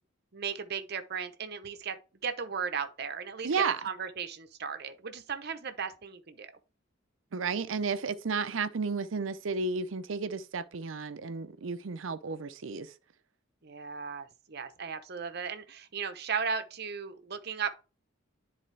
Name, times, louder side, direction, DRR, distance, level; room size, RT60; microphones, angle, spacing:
voice 1, 0.3-2.0 2.2-3.5 3.8-6.5 13.6-17.7, right 6 dB, 55° right, 0.8 m, -36 dB
voice 2, 3.4-3.8 7.3-12.9, right 4 dB, 85° right, 0.6 m, -32 dB
10.0 x 4.1 x 3.3 m
head